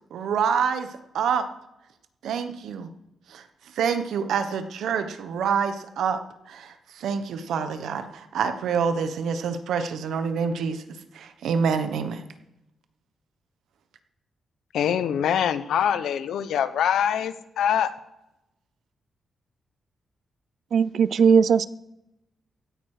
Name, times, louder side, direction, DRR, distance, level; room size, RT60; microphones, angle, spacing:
voice 1, 0.1-1.5 2.2-2.9 3.3-3.4 3.7-6.2 6.5-12.2, right 6 dB, 80° right, 9 dB, 1.1 m, -27 dB
voice 2, 14.7-17.9, left 9 dB, 90° left, 13 dB, 0.8 m, -24 dB
voice 3, 20.7-21.7, right 6 dB, 50° right, 18 dB, 0.4 m, -18 dB
16.0 x 9.0 x 4.9 m, 0.89 s
wide cardioid pair, 175°, 0 cm